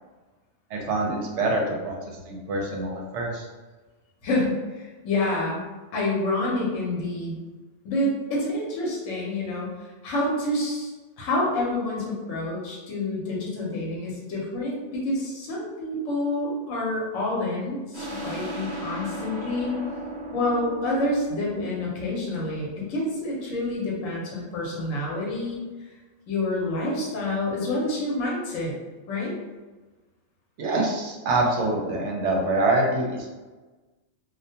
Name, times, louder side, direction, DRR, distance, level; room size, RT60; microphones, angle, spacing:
voice 1, 0.7-3.5 30.6-33.3, right 2 dB, 70° right, 0 dB, 0.8 m, -25 dB
voice 2, 4.2-5.6 5.9-7.4 7.8-9.7 10.0-10.9 11.2-19.8 20.3-25.6 26.3-28.7 29.1-29.3, left 2 dB, 80° left, -4 dB, 1.0 m, -28 dB
sound 1, 17.9-23.2, right 1 dB, 20° right, 0.9 m, -37 dB
2.4 x 2.2 x 2.7 m, 1.2 s
omnidirectional pair, 1.3 m